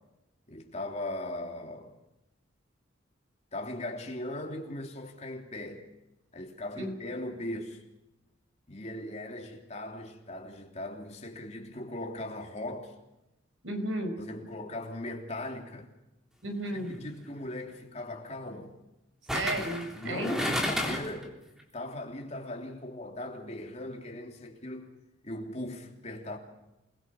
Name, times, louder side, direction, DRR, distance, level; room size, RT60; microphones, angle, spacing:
voice 1, 0.5-1.9 3.5-5.9 6.3-7.8 8.7-12.9 14.2-15.9 16.7-18.8 20.0-21.4 21.7-24.9 25.2-26.4, left 1 dB, 35° left, 3.4 m, -39 dB
voice 2, 13.6-14.1 16.4-16.9 19.3-20.4, right 1 dB, 90° right, 4.8 m, -33 dB
sound 1, 16.7-16.9 19.3-21.2 21.6-21.7, equal, 5° right, 3.3 m, -32 dB
28.0 x 21.0 x 6.0 m
head